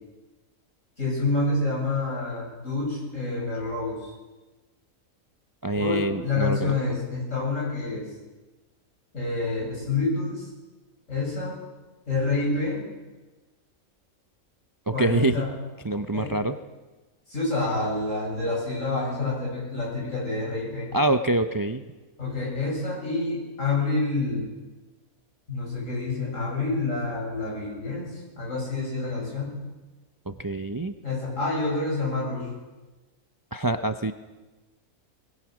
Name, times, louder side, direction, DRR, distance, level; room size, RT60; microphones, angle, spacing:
voice 1, 1.0-4.0 5.7-8.1 9.1-10.5 11.1-11.6 12.1-12.8 14.9-15.5 16.1-16.3 17.3-20.9 22.2-24.5 25.5-29.6 31.0-32.5, left 3 dB, 55° left, -4 dB, 8.2 m, -28 dB
voice 2, 5.6-6.7 14.9-15.4 15.8-16.6 20.9-21.8 30.3-30.9 33.5-34.1, right 2 dB, 35° right, 8 dB, 0.3 m, -25 dB
21.5 x 21.0 x 6.2 m, 1.2 s
omnidirectional pair, 1.6 m